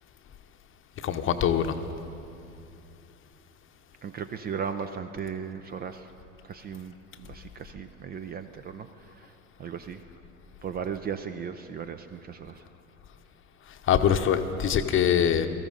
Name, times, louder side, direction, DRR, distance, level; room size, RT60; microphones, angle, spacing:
voice 1, 1.0-1.8 13.9-15.5, left 8 dB, 35° left, 8 dB, 0.9 m, -23 dB
voice 2, 4.0-6.1 6.4-6.9 7.2-9.3 9.6-10.0 10.6-12.6, right 7 dB, 25° right, 10 dB, 0.5 m, -36 dB
18.0 x 14.0 x 3.9 m, 2.6 s
hypercardioid pair, 80°, 38 cm